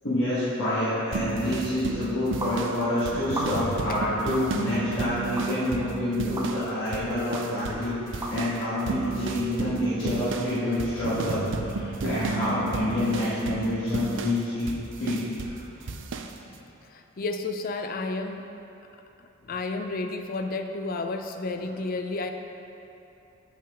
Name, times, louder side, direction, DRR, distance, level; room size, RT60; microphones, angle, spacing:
voice 1, 0.0-14.7 15.0-15.6, left 1 dB, 60° left, -12 dB, 1.6 m, -27 dB
sound 1, 1.1-6.7 6.9-7.9 8.1-15.6 15.9-16.3, right 4 dB, 60° right, 0.4 m, -32 dB
sound 2, 2.4-2.6 3.3-3.8 4.3-4.5 5.4-5.5 6.4-6.5 7.3-7.4 8.2-8.3, right 1 dB, 15° right, 0.7 m, -33 dB
voice 2, 16.9-18.5 19.2-22.3, left 3 dB, 45° left, 6 dB, 0.4 m, -32 dB
8.3 x 5.7 x 3.6 m, 2.9 s
head